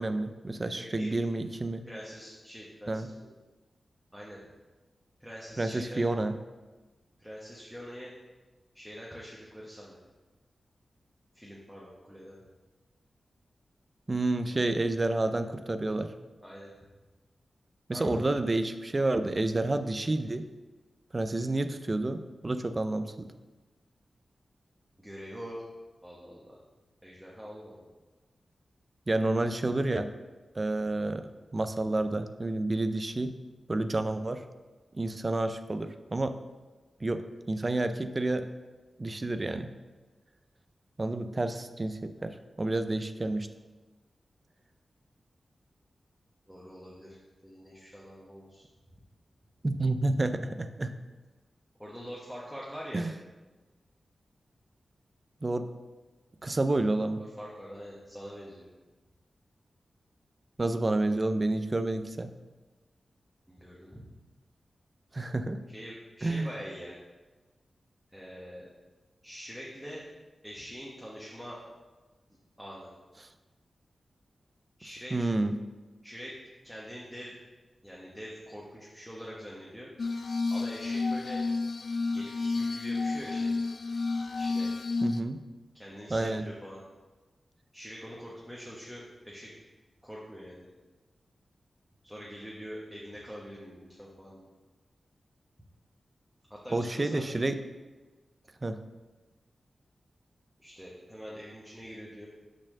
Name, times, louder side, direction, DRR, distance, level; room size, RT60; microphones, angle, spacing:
voice 1, 0.0-1.8 2.9-3.1 5.6-6.3 14.1-16.1 17.9-20.5 21.1-23.3 29.1-30.1 30.5-31.2 31.5-33.3 33.7-34.4 34.9-36.3 37.0-37.2 37.5-38.5 39.0-39.7 41.0-43.5 49.6-50.9 52.9-53.1 55.4-55.6 56.4-57.2 60.6-62.3 65.1-65.6 66.2-66.5 75.1-75.5 85.0-85.4 86.1-86.5 96.7-97.5 98.6-98.8, right 2 dB, 25° right, 9 dB, 0.4 m, -29 dB
voice 2, 0.6-1.1 1.8-3.3 4.1-4.4 5.2-6.1 7.2-8.1 8.7-10.0 11.3-12.4 16.4-16.7 17.9-18.3 25.0-25.6 26.0-26.6 27.0-27.7 46.5-47.2 47.4-48.6 51.8-53.0 57.2-58.7 63.5-64.0 65.7-66.9 68.1-68.7 69.2-70.0 70.4-71.7 72.6-72.9 74.8-75.3 76.0-76.3 76.6-77.3 77.8-79.9 80.5-81.4 82.1-83.6 84.4-84.7 85.7-86.8 87.7-89.6 90.0-90.6 92.0-94.5 96.5-97.5 100.6-102.3, equal, ahead, -5 dB, 1.0 m, -44 dB
Glass, 80.0-85.2, left 3 dB, 50° left, 0.3 m, -31 dB
6.2 x 4.3 x 6.4 m, 1.2 s
wide cardioid pair, 150°, 0 cm